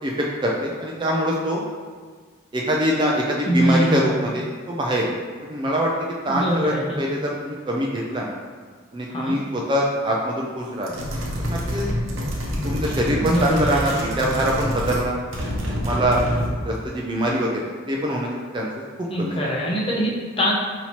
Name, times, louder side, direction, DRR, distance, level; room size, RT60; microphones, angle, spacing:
voice 1, 0.0-1.6 2.5-5.1 5.4-5.9 6.2-8.3 8.9-10.9 11.5-11.9 12.6-15.2 15.7-16.2 16.6-18.3 18.5-18.7 19.2-19.4, equal, 20° right, -2 dB, 0.3 m, -24 dB
voice 2, 3.4-4.1 6.2-7.0 9.1-9.4 13.2-14.0 19.1-20.5, equal, 25° left, -4 dB, 0.7 m, -23 dB
sound 1, 10.8-15.1 15.3-16.6, equal, 70° right, 0.7 m, -27 dB
5.5 x 2.8 x 3.0 m, 1.5 s
head